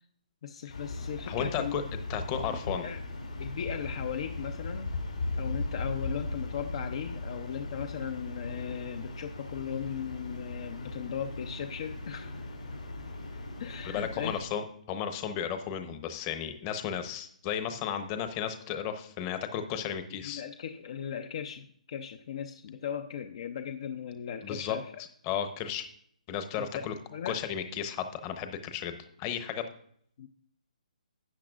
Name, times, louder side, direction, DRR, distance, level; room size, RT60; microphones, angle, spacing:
voice 1, 0.4-1.8 2.5-3.0 3.4-4.9 5.4-12.3 13.6-14.4 20.2-24.9 26.6-27.4 30.2-30.3, left 8 dB, 45° left, 6 dB, 0.6 m, -37 dB
sound 1, 0.7-14.4, left 2 dB, 85° left, 4.0 m, -38 dB
voice 2, 1.3-1.8 2.1-2.9 13.8-20.4 24.4-24.8 25.2-25.9 26.3-26.9 27.2-29.6, left 8 dB, 25° left, 8 dB, 0.9 m, -34 dB
12.5 x 8.4 x 2.5 m, 0.66 s
hypercardioid pair, 155°, 4 cm